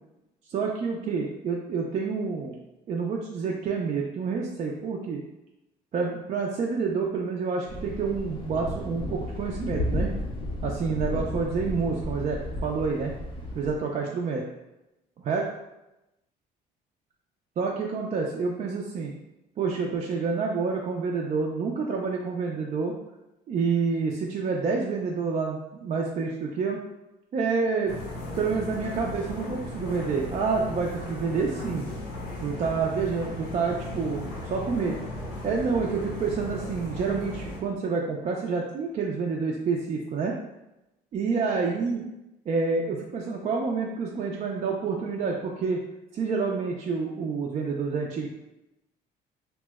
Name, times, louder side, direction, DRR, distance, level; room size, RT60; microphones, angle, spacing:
voice 1, 0.5-2.5 2.9-5.2 5.9-10.1 10.6-13.1 13.5-14.4 15.2-15.5 17.6-19.1 19.6-23.0 23.5-26.8 27.3-27.9 28.4-31.9 32.4-35.0 35.4-40.4 41.1-42.0 42.5-45.8 46.1-48.3, right 5 dB, 40° right, -1 dB, 0.4 m, -28 dB
Thunder, 7.7-13.8, left 1 dB, 30° left, 0.5 m, -33 dB
sound 1, 27.9-37.6, left 1 dB, 70° left, 0.8 m, -36 dB
2.9 x 2.0 x 3.4 m, 0.93 s
cardioid pair, 110°, 17 cm